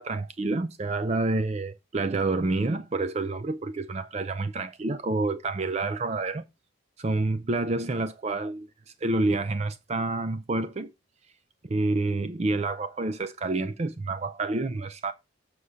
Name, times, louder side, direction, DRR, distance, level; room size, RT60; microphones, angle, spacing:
voice 1, 0.0-6.4 7.0-8.7 9.0-10.9 11.7-15.1, right 2 dB, 30° right, 0.4 m, -28 dB
7.1 x 4.9 x 5.5 m
head